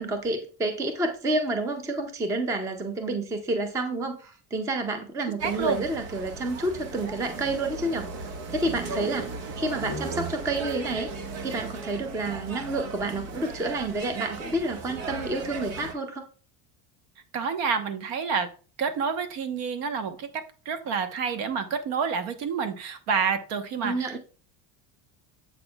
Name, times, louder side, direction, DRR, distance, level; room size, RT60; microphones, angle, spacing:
voice 1, 0.0-9.3 9.6-11.1 11.4-16.2 23.8-24.2, right 2 dB, 10° right, 7 dB, 0.4 m, -29 dB
voice 2, 5.2-5.9 17.3-18.5 18.8-24.2, right 6 dB, 70° right, 9 dB, 1.2 m, -29 dB
sound 1, 5.4-15.9, right 3 dB, 85° right, 1.3 m, -36 dB
7.7 x 6.0 x 2.3 m, 0.36 s
cardioid pair, 155°, 46 cm